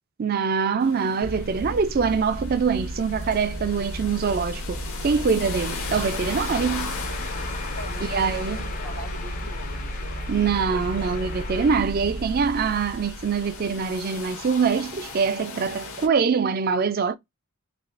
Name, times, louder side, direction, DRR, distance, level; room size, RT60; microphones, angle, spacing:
voice 1, 0.2-7.0 8.1-8.6 10.3-17.2, right 5 dB, 40° right, 0.3 m, -24 dB
sound 1, 0.8-16.1, left 5 dB, 70° left, 0.8 m, -39 dB
sound 2, 1.2-14.5, equal, 80° right, 0.7 m, -34 dB
sound 3, 5.6-11.8, left 4 dB, 40° left, 0.5 m, -38 dB
voice 2, 7.7-10.3 10.7-11.3, left 1 dB, 90° left, 1.3 m, -42 dB
3.3 x 2.4 x 2.4 m
head